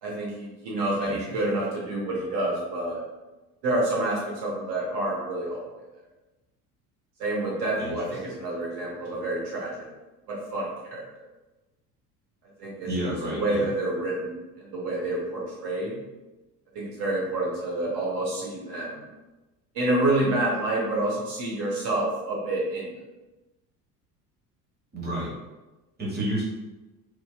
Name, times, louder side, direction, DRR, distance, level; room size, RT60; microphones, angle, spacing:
voice 1, 0.0-3.0 3.6-5.8 7.2-9.9 10.3-11.0 12.6-12.9 13.3-16.0 16.7-19.1 19.7-23.0, right 2 dB, 55° right, -4 dB, 1.1 m, -28 dB
voice 2, 0.8-1.3 7.8-8.2 12.9-13.7 24.9-25.3 26.0-26.4, right 1 dB, 20° right, -4 dB, 1.2 m, -31 dB
4.4 x 2.8 x 2.3 m, 1.1 s
figure-of-eight pair, 65°, 47 cm